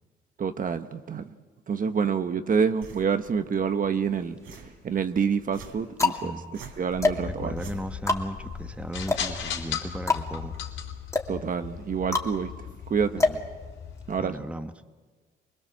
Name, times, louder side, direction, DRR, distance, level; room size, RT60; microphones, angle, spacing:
voice 1, 0.4-1.3 1.7-6.3 6.8-7.5 11.3-12.5 12.9-13.3 14.1-14.5, right 6 dB, 45° right, 1.1 m, -27 dB
sound 1, 2.8-10.8, right 4 dB, 85° right, 3.6 m, -50 dB
sound 2, 4.0-4.8 5.4-14.2, left 3 dB, 15° left, 2.6 m, -29 dB
voice 2, 6.1-6.5 7.2-10.6 13.2-13.4 14.2-14.7, right 1 dB, 5° right, 1.3 m, -36 dB
sound 3, 6.9-14.3, left 7 dB, 75° left, 3.8 m, -37 dB
25.0 x 21.0 x 7.4 m
cardioid pair, 90°, 20 cm